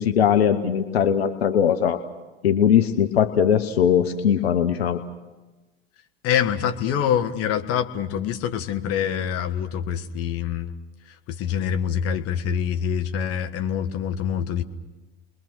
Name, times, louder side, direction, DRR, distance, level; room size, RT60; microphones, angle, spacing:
voice 1, 0.0-2.0 2.4-5.0, left 8 dB, 80° left, 9 dB, 1.1 m, -20 dB
voice 2, 6.2-10.8 11.3-14.6, left 8 dB, 50° left, 7 dB, 1.6 m, -25 dB
30.0 x 22.0 x 6.4 m, 1.2 s
hypercardioid pair, 75°, 31 cm